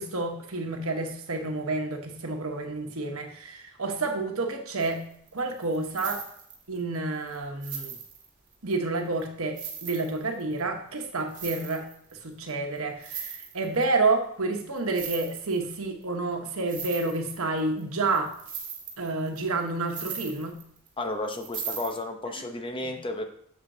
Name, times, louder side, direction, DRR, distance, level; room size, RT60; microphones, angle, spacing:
voice 1, 0.0-5.0 5.3-6.2 6.7-7.9 8.6-11.8 12.2-18.3 19.0-20.6 22.8-23.0, right 3 dB, 90° right, 4 dB, 1.1 m, -29 dB
sound 1, 4.8-6.8 7.3-7.4 7.6-8.7 9.2-9.3 9.6-10.6 11.2-12.1 12.5-12.6 12.8-13.8 14.8-15.7 16.0-16.1 16.5-17.8 18.1-20.9 21.3-22.0, right 7 dB, 40° right, 1.7 m, -38 dB
voice 2, 21.0-23.3, left 2 dB, 25° left, 5 dB, 0.8 m, -32 dB
7.8 x 7.3 x 2.7 m, 0.68 s
head